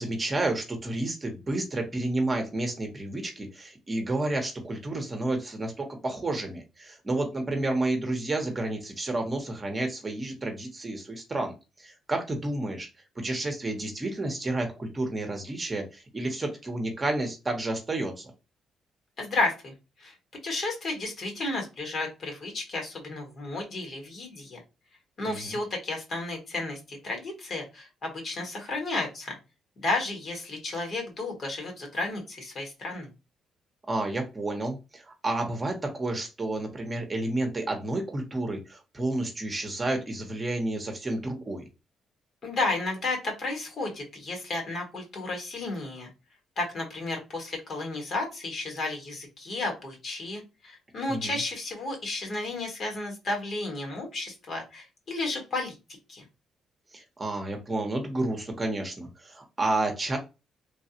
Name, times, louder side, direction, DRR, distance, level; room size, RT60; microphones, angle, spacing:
voice 1, 0.0-12.9 13.2-18.3 25.3-25.6 33.9-41.6 51.1-51.4 56.9-60.2, right 2 dB, 25° right, 3 dB, 0.9 m, -30 dB
voice 2, 19.2-20.1 20.4-24.6 25.2-29.4 29.8-33.1 42.4-46.1 46.6-55.7 56.1-56.2, left 2 dB, 50° left, 2 dB, 1.5 m, -32 dB
3.3 x 2.3 x 2.8 m, 0.28 s
cardioid pair, 90°, 0 cm